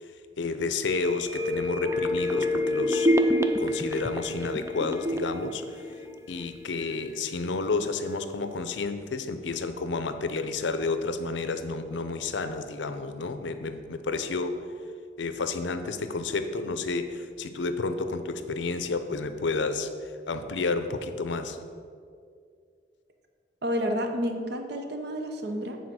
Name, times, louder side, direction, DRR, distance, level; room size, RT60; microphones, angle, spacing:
voice 1, 0.4-3.1 3.6-5.9 6.3-14.6 15.2-21.6, left 3 dB, 75° left, 9 dB, 0.6 m, -31 dB
sound 1, 0.9-6.6 6.9-7.0, left 1 dB, 15° right, 0.4 m, -27 dB
voice 2, 23.6-25.8, equal, 65° right, 4 dB, 0.8 m, -30 dB
8.4 x 4.1 x 6.2 m, 2.3 s
head